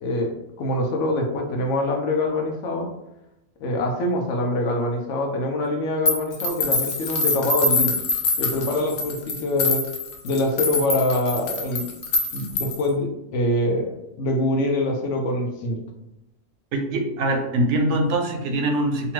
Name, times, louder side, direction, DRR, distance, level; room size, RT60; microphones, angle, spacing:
voice 1, 0.0-2.9 3.6-8.0 8.4-9.8 10.2-11.9 12.3-15.8, left 1 dB, 90° left, 3 dB, 0.9 m, -24 dB
sound 1, 6.1-12.9, left 2 dB, 60° left, 0.7 m, -25 dB
voice 2, 16.7-19.1, right 1 dB, 80° right, 4 dB, 0.9 m, -23 dB
2.7 x 2.2 x 3.0 m, 0.90 s
omnidirectional pair, 1.2 m